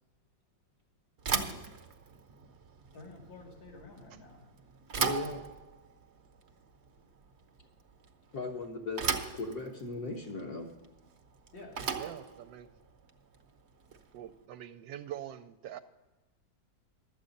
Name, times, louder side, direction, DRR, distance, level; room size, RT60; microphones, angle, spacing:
Bicycle / Thump thud, 1.2-14.3, right 6 dB, 45° right, 1.0 m, -38 dB
voice 1, 1.3-1.7 2.9-4.4 11.5-11.8, left 2 dB, 90° left, -1 dB, 3.0 m, -50 dB
voice 2, 5.0-5.4 8.3-10.7, left 3 dB, 55° left, -4 dB, 1.6 m, -38 dB
voice 3, 11.9-12.7 14.1-15.8, right 11 dB, 80° right, 7 dB, 1.3 m, -44 dB
12.5 x 8.5 x 5.2 m, 1.1 s
omnidirectional pair, 2.0 m